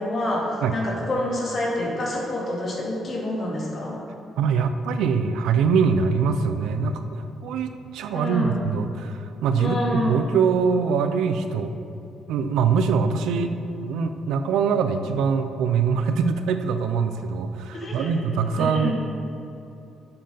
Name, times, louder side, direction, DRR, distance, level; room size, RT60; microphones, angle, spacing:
voice 1, 0.0-4.0 8.1-8.5 9.6-10.2 17.7-18.9, left 1 dB, 50° left, -3 dB, 2.1 m, -27 dB
voice 2, 4.4-11.7 12.3-18.9, right 6 dB, 85° right, 8 dB, 0.5 m, -23 dB
8.5 x 7.7 x 4.0 m, 2.9 s
cardioid pair, 90°, 0 cm